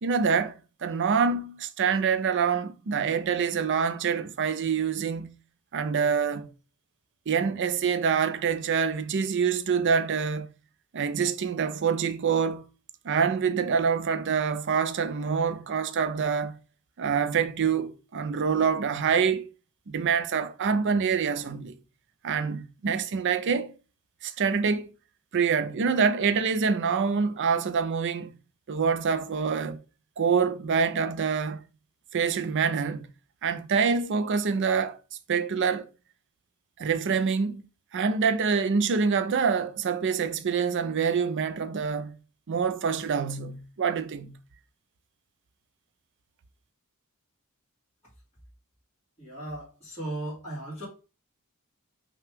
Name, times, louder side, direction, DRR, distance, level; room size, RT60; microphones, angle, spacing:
voice 1, 0.0-5.3 5.7-6.5 7.3-10.5 10.9-12.6 13.0-16.6 17.0-19.4 19.9-21.7 22.2-23.7 24.2-24.9 25.3-28.3 28.7-29.8 30.2-31.6 32.1-33.1 33.4-35.0 35.3-35.9 36.8-37.6 37.9-42.2 42.5-44.3, right 6 dB, 55° right, 0.5 m, -26 dB
voice 2, 49.2-50.9, right 1 dB, 30° left, 2.0 m, -36 dB
5.7 x 2.3 x 3.4 m
head